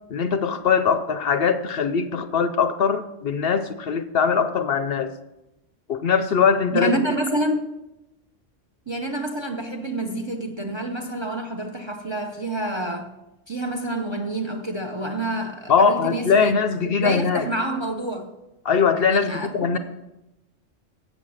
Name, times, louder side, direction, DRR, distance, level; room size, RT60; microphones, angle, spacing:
voice 1, 0.1-5.1 5.9-7.0 15.7-17.5 18.6-19.8, left 6 dB, 60° left, 0.7 m, -21 dB
voice 2, 6.7-7.7 8.9-13.1 13.5-16.5 16.8-18.3 19.1-19.8, right 1 dB, 30° right, 0.6 m, -28 dB
8.4 x 7.2 x 6.3 m
omnidirectional pair, 1.3 m